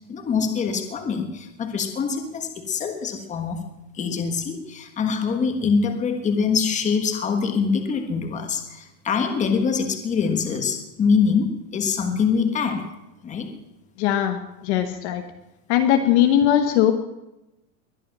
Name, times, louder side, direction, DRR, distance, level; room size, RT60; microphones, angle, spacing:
voice 1, 0.1-3.6 4.0-12.9 13.2-13.5, left 5 dB, 15° left, 6 dB, 1.5 m, -24 dB
voice 2, 14.0-15.2 15.7-16.9, left 11 dB, 40° left, 7 dB, 1.1 m, -20 dB
21.0 x 10.5 x 6.1 m, 0.95 s
supercardioid pair, 170°, 49 cm